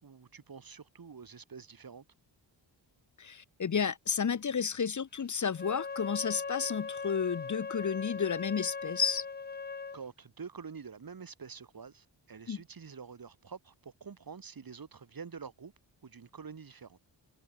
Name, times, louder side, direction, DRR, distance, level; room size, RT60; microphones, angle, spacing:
voice 1, 0.0-2.0 9.9-15.7 16.0-17.0, right 6 dB, 50° right, 5.9 m, -47 dB
voice 2, 3.2-9.2 12.5-12.6, left 6 dB, 40° left, 1.0 m, -32 dB
Wind instrument woodwind instrument, 5.5-10.0, left 5 dB, 20° left, 0.6 m, -39 dB
wide cardioid pair, 120°, 45 cm